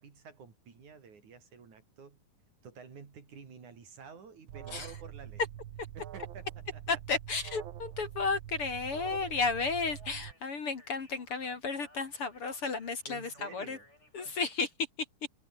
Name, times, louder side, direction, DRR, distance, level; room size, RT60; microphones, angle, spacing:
voice 1, 0.0-2.2 2.6-5.4 5.9-6.8 13.1-13.8 14.2-14.4, right 6 dB, 65° right, 5.0 m, -51 dB
Alarm, 4.5-10.3, right 11 dB, 80° right, 1.1 m, -45 dB
voice 2, 6.9-13.8 14.1-14.7, left 4 dB, 45° left, 3.0 m, -33 dB
Speech, 9.4-14.7, left 1 dB, 20° left, 8.4 m, -61 dB
omnidirectional pair, 3.8 m